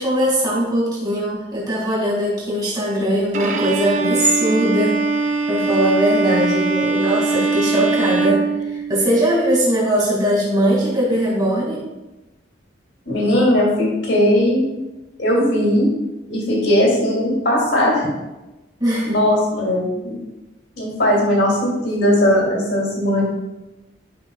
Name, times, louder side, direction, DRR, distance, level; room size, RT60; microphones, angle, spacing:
voice 1, 0.0-5.0 5.5-8.4 8.9-11.8 13.1-13.2 18.8-19.2, right 1 dB, 20° right, -5 dB, 2.4 m, -20 dB
Bowed string instrument, 3.3-9.3, right 3 dB, 40° right, 0.6 m, -21 dB
voice 2, 13.1-14.6 15.2-15.9 16.3-18.1 19.0-20.2 20.8-23.2, left 1 dB, 70° left, -3 dB, 2.8 m, -18 dB
11.5 x 5.5 x 2.4 m, 1.0 s
head